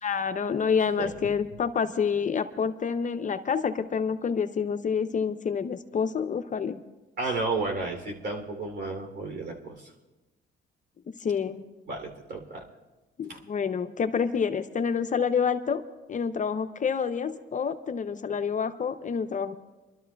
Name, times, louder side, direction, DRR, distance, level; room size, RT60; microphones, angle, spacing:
voice 1, 0.0-6.8 11.2-11.6 13.2-15.8 16.1-19.5, left 6 dB, 40° left, 9 dB, 0.6 m, -28 dB
voice 2, 7.2-9.9 11.9-12.6 13.3-13.4, right 3 dB, 60° right, 2 dB, 3.0 m, -32 dB
30.0 x 12.5 x 2.3 m, 1.1 s
cardioid pair, 90°, 20 cm